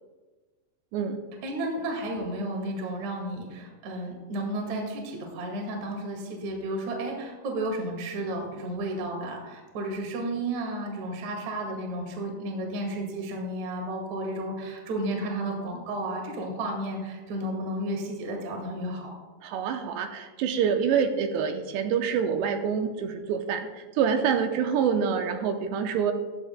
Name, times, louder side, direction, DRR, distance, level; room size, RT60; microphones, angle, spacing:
voice 1, 1.4-19.1, right 1 dB, 50° right, 1 dB, 2.6 m, -32 dB
voice 2, 19.4-23.7 24.0-26.1, right 7 dB, 85° right, 5 dB, 2.6 m, -26 dB
15.0 x 12.0 x 2.2 m, 1.3 s
omnidirectional pair, 5.4 m